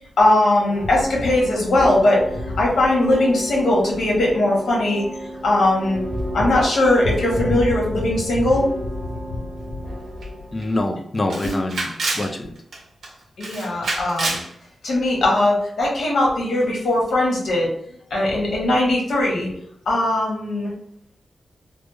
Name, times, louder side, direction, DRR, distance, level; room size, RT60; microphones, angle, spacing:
voice 1, 0.2-5.0 5.4-6.0 6.3-8.7 13.4-14.4 14.8-17.7 18.1-19.5 19.9-20.7, left 1 dB, 80° left, -3 dB, 1.2 m, -19 dB
sound 1, 0.7-10.9, left 1 dB, 5° right, 0.8 m, -30 dB
Camera, 10.2-10.3 10.6-10.7 11.3-12.3 12.7-13.1 13.4-14.5, right 2 dB, 90° right, 0.8 m, -27 dB
voice 2, 10.5-12.6, left 2 dB, 25° left, 5 dB, 0.4 m, -25 dB
3.3 x 2.0 x 3.2 m, 0.69 s
wide cardioid pair, 160°, 0 cm